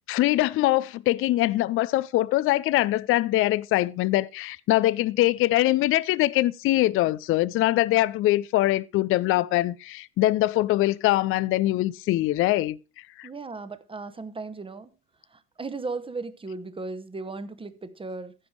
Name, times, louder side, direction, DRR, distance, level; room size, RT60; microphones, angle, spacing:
voice 1, 0.1-12.8 13.2-13.3, left 16 dB, 30° left, 0.4 m, -23 dB
voice 2, 13.2-14.9 15.3-18.3, right 3 dB, 10° right, 1.0 m, -36 dB
15.0 x 5.1 x 4.7 m
hypercardioid pair, 75°, 45 cm